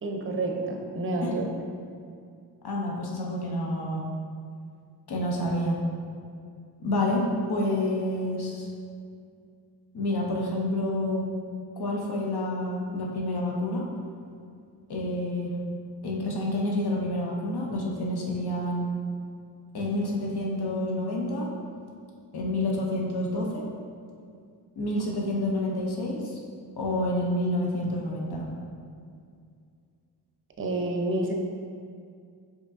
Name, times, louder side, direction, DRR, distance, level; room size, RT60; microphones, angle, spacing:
voice 1, 0.0-1.5 30.6-31.3, right 2 dB, 30° right, 2 dB, 0.6 m, -29 dB
voice 2, 2.6-4.0 5.1-5.8 6.8-8.7 9.9-11.3 11.8-13.8 14.9-15.5 16.0-18.9 19.7-21.5 22.3-23.7 24.8-26.2 26.8-28.5, left 1 dB, 65° left, -2 dB, 0.8 m, -28 dB
4.9 x 2.9 x 2.5 m, 2.3 s
cardioid pair, 65°, 43 cm